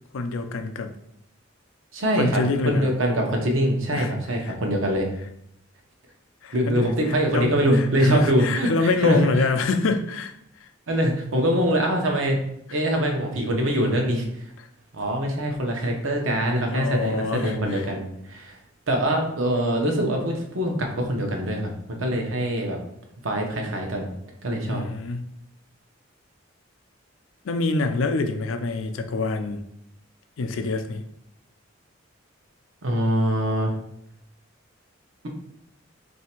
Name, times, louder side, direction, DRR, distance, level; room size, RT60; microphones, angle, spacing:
voice 1, 0.1-0.9 2.2-2.9 3.9-4.1 4.4-4.5 6.4-10.3 10.6-10.7 16.7-17.9 24.7-25.3 27.4-29.6 30.4-31.0, left 3 dB, 80° left, 7 dB, 0.5 m, -26 dB
voice 2, 1.9-5.1 6.5-9.2 10.9-12.4 12.7-14.4 14.9-18.6 18.9-21.7 22.0-22.8 23.2-24.1 24.4-24.8 32.8-33.7, equal, 80° right, 2 dB, 0.8 m, -23 dB
3.3 x 2.7 x 4.4 m, 0.77 s
head